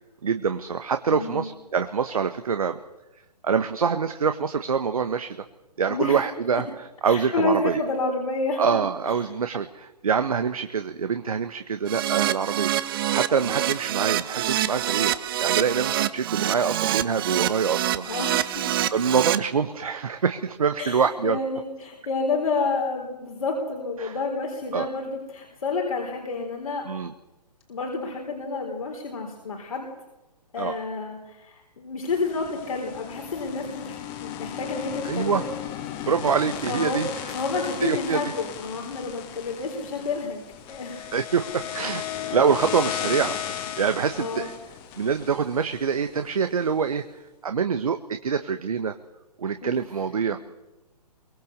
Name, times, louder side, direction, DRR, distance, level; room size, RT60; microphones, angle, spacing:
voice 1, 0.2-2.8 3.4-5.4 5.8-6.6 7.0-7.8 8.6-18.1 18.9-21.4 24.0-24.1 24.7-24.9 26.8-27.1 30.6-30.8 35.0-35.4 36.0-37.2 37.8-38.2 41.1-42.0 42.3-44.5 45.0-48.9 49.4-50.5, right 6 dB, 60° right, 8 dB, 1.4 m, -25 dB
voice 2, 1.1-1.4 5.9-6.2 7.0-8.8 9.1-9.2 18.1-18.6 20.8-26.9 27.7-29.9 30.5-35.4 35.9-36.1 36.7-41.1 44.2-44.5 49.6-49.8 50.3-50.4, left 3 dB, 55° left, 1 dB, 4.0 m, -29 dB
Keyboard (musical), 11.9-19.4, right 13 dB, 35° right, 1.1 m, -26 dB
sound 1, 32.1-46.3, left 10 dB, 25° left, 2.2 m, -35 dB
25.0 x 23.5 x 6.8 m, 1.0 s
figure-of-eight pair, 125°, 21 cm